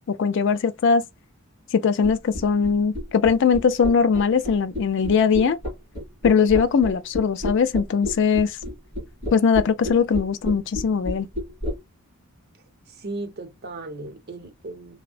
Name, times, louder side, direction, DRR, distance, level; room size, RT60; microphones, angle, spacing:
voice 1, 0.2-1.0 1.7-5.6 6.2-8.6 9.3-11.3, left 6 dB, 55° left, 0.3 m, -20 dB
sound 1, 2.0-11.8, left 1 dB, 35° left, 2.0 m, -30 dB
voice 2, 12.9-14.9, right 2 dB, 45° right, 0.7 m, -36 dB
3.4 x 2.0 x 2.3 m
head